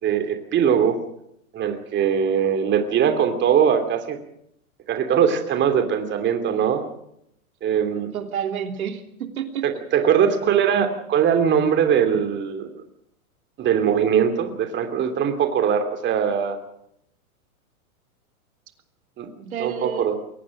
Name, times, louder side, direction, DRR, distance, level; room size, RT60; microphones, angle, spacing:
voice 1, 0.0-1.0 1.5-4.2 4.9-6.8 7.6-8.1 9.6-12.7 13.6-16.6 19.2-19.3 19.6-20.2, right 8 dB, 25° right, 7 dB, 2.7 m, -21 dB
voice 2, 8.1-9.6 10.0-10.1 19.4-20.1, right 8 dB, 75° right, 6 dB, 3.2 m, -30 dB
22.5 x 18.5 x 6.4 m, 0.75 s
hypercardioid pair, 125°, 43 cm